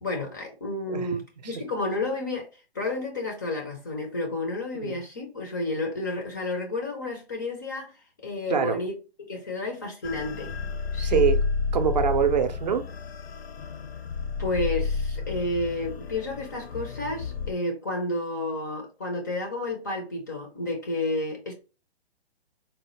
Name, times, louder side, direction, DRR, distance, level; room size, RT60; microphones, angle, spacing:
voice 1, 0.0-2.5 2.7-7.9 8.2-8.9 9.3-10.5 10.9-11.2 14.4-21.5, left 2 dB, 20° left, 0.4 m, -31 dB
sound 1, 10.0-17.5, left 4 dB, 70° left, 0.6 m, -30 dB
voice 2, 11.0-11.4 11.7-12.9, right 7 dB, 45° right, 0.5 m, -24 dB
4.0 x 2.1 x 2.9 m
figure-of-eight pair, 135°, 32 cm